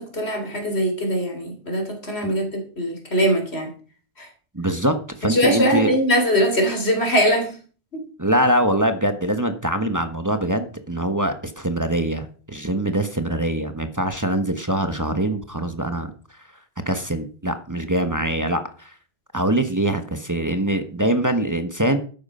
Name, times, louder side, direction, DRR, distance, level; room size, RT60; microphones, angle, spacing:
voice 1, 0.0-3.7 4.2-4.3 5.2-7.6 7.9-8.0, equal, 90° left, 4 dB, 4.0 m, -22 dB
voice 2, 4.5-4.9 5.2-5.9 8.2-16.1 16.9-18.9 19.3-22.0, right 1 dB, 20° right, 7 dB, 1.2 m, -23 dB
12.5 x 9.6 x 5.6 m, 0.41 s
omnidirectional pair, 1.1 m